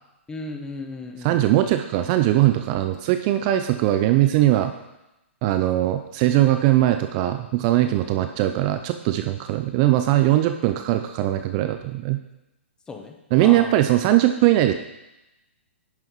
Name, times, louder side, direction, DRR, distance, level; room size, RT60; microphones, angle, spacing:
voice 1, 0.3-1.7 12.9-13.7, left 3 dB, 10° left, 4 dB, 0.8 m, -36 dB
voice 2, 1.2-4.7 5.4-12.2 13.3-14.7, right 14 dB, 35° right, 8 dB, 0.4 m, -20 dB
10.5 x 5.6 x 3.1 m, 0.94 s
hypercardioid pair, 130°, 7 cm